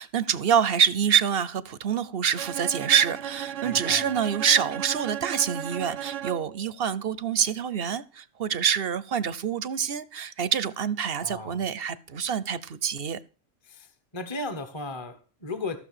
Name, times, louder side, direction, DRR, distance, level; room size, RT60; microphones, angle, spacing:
voice 1, 0.0-13.2, right 8 dB, 55° right, 0.9 m, -26 dB
Bowed string instrument, 2.4-6.6, right 11 dB, 75° right, 1.1 m, -35 dB
voice 2, 3.6-4.1 11.2-11.6 13.6-15.8, left 2 dB, 25° left, 1.3 m, -36 dB
14.5 x 6.6 x 6.7 m
omnidirectional pair, 1.3 m